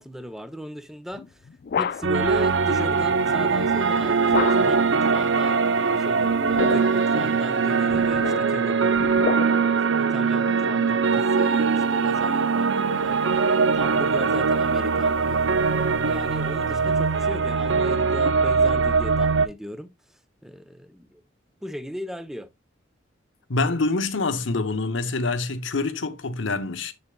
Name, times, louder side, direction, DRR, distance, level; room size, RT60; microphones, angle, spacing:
voice 1, 0.0-1.5 1.8-21.2 21.6-22.5, equal, ahead, 0.6 m, -37 dB
sound 1, 1.1-2.3 4.3-4.9 6.3-7.1 7.9-9.8, left 6 dB, 50° left, 0.3 m, -30 dB
sound 2, 2.0-19.5, right 5 dB, 70° right, 0.6 m, -22 dB
voice 2, 23.5-26.9, left 3 dB, 75° left, 0.9 m, -26 dB
7.1 x 6.7 x 2.2 m
head